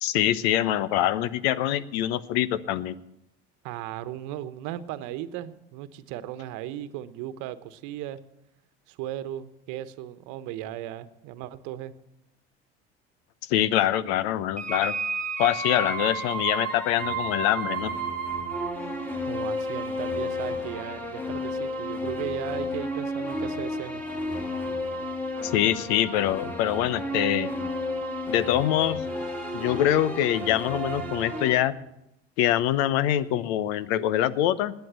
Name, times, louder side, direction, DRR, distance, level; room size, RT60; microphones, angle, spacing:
voice 1, 0.0-2.9 13.4-14.9 15.4-18.0 25.4-27.5 28.3-29.0 29.5-31.7 32.4-34.7, left 12 dB, 70° left, 17 dB, 1.0 m, -24 dB
voice 2, 3.6-8.2 8.9-11.9 19.3-24.0, right 12 dB, 65° right, 12 dB, 1.2 m, -36 dB
sound 1, 14.6-31.6, equal, 5° left, 3.1 m, -32 dB
19.0 x 9.3 x 7.6 m, 0.85 s
hypercardioid pair, 75°, 32 cm